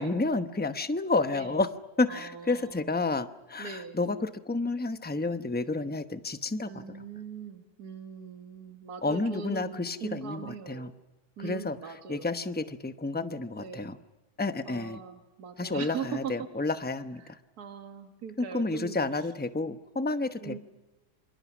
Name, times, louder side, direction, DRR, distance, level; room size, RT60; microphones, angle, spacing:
voice 1, 0.0-1.7 2.0-6.8 9.0-10.9 11.4-11.8 12.1-14.0 14.4-15.0 15.6-17.2 18.5-20.6, left 3 dB, 10° left, 10 dB, 0.6 m, -30 dB
voice 2, 1.3-1.6 2.1-2.9 3.6-4.0 6.6-10.9 11.4-12.5 13.6-13.9 14.6-16.5 17.2-19.3 20.4-20.6, right 6 dB, 65° right, 5 dB, 2.2 m, -41 dB
28.5 x 26.5 x 6.2 m, 1.1 s
omnidirectional pair, 1.8 m